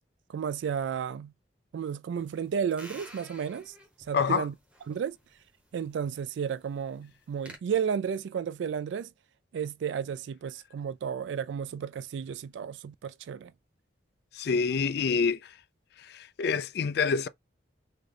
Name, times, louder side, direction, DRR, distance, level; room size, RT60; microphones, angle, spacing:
voice 1, 0.3-1.3 1.7-3.7 4.1-4.5 4.9-5.2 5.7-9.1 9.5-13.5, right 7 dB, 75° right, 0.3 m, -33 dB
sound 1, 2.2-7.6, equal, 5° right, 0.9 m, -52 dB
voice 2, 4.1-4.5 14.3-15.5 16.0-17.3, left 5 dB, 60° left, 0.3 m, -27 dB
3.9 x 2.2 x 3.2 m
head